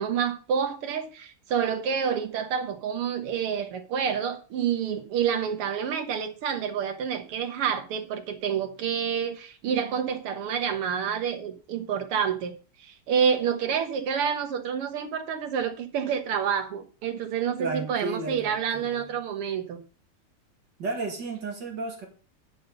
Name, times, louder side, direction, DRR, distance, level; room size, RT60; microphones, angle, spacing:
voice 1, 0.0-12.5 12.8-19.8, right 7 dB, 90° right, 2.2 m, -28 dB
voice 2, 17.6-19.1 20.8-22.1, right 3 dB, 55° right, 2.6 m, -33 dB
10.0 x 5.5 x 5.4 m
omnidirectional pair, 2.4 m